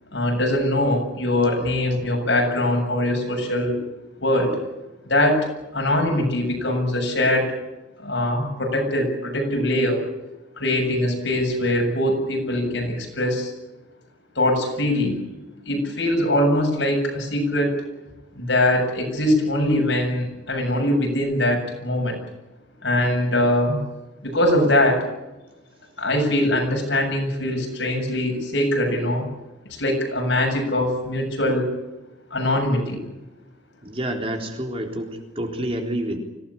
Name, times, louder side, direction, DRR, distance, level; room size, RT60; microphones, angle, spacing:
voice 1, 0.1-3.8 4.2-4.6 5.1-5.5 5.7-7.5 8.0-10.0 10.6-13.5 14.4-15.2 15.6-17.8 18.3-22.2 22.8-23.8 24.2-25.0 26.0-29.3 29.7-31.7 32.3-33.0, left 1 dB, 70° left, 3 dB, 7.6 m, -22 dB
voice 2, 33.8-36.2, right 1 dB, 30° right, 2 dB, 3.8 m, -28 dB
25.5 x 18.0 x 8.7 m, 1.1 s
head